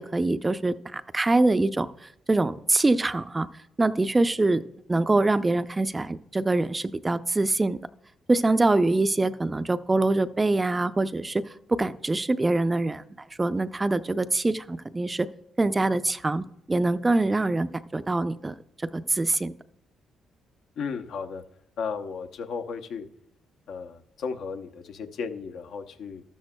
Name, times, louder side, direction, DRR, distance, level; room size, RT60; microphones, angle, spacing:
voice 1, 0.0-3.5 3.8-4.6 4.9-7.8 8.3-11.4 11.7-13.0 13.4-15.3 15.6-18.5 18.9-19.5, right 2 dB, 20° right, 12 dB, 0.4 m, -24 dB
voice 2, 20.8-21.4 21.8-23.1 23.7-26.2, left 5 dB, 75° left, 7 dB, 0.7 m, -34 dB
13.0 x 12.5 x 2.2 m, 0.78 s
cardioid pair, 90°, 0 cm